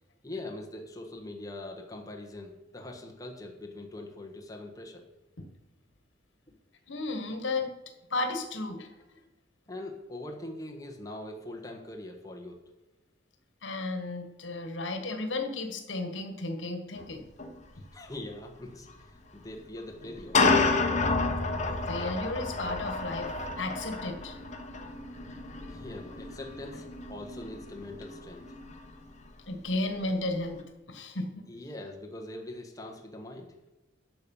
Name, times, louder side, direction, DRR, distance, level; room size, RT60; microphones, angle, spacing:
voice 1, 0.2-5.0 9.7-12.6 17.9-20.5 25.7-28.5 31.5-33.5, left 1 dB, 20° left, 0 dB, 1.3 m, -42 dB
voice 2, 6.9-7.7 8.1-8.9 13.6-17.2 21.9-24.4 29.5-31.4, left 2 dB, 75° left, 5 dB, 1.6 m, -34 dB
sound 1, 17.0-17.1 17.4-17.5 18.9-19.0 20.0-29.1, left 3 dB, 35° left, 1.3 m, -30 dB
12.0 x 6.8 x 5.6 m, 1.0 s
head